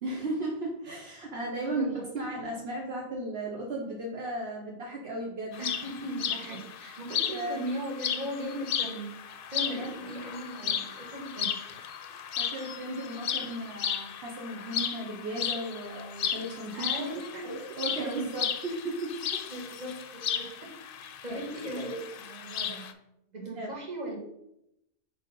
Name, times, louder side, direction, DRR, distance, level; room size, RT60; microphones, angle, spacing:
voice 1, 0.0-5.6 7.3-7.7 9.7-9.9 12.1-17.1 17.4-19.4 21.3-21.4 23.5-23.7, right 1 dB, 65° right, -1 dB, 1.2 m, -36 dB
voice 2, 1.6-2.3 5.6-9.2 9.5-11.6 13.3-13.5 16.7-17.5 18.0-18.2 19.5-23.0 23.3-24.2, right 1 dB, 40° right, -1 dB, 1.6 m, -38 dB
sound 1, 5.5-22.9, left 8 dB, 60° left, 0.7 m, -35 dB
5.0 x 4.3 x 5.3 m, 0.81 s
omnidirectional pair, 1.2 m